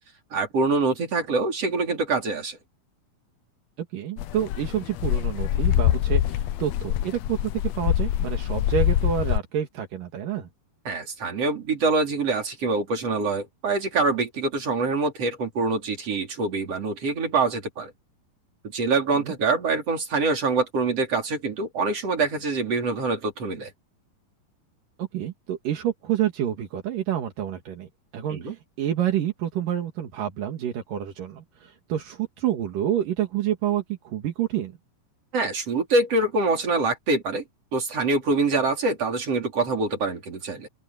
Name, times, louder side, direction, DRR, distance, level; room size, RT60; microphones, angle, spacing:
voice 1, 0.3-2.6 10.9-17.9 18.7-23.7 28.3-28.6 35.3-37.4 37.7-40.7, right 3 dB, 45° right, 5.3 m, -25 dB
voice 2, 3.8-7.4 7.8-10.5 19.1-19.3 25.0-27.9 28.1-34.7, right 10 dB, 75° right, 3.5 m, -28 dB
sound 1, 4.2-9.4, left 12 dB, 75° left, 1.5 m, -24 dB
open air
omnidirectional pair, 3.9 m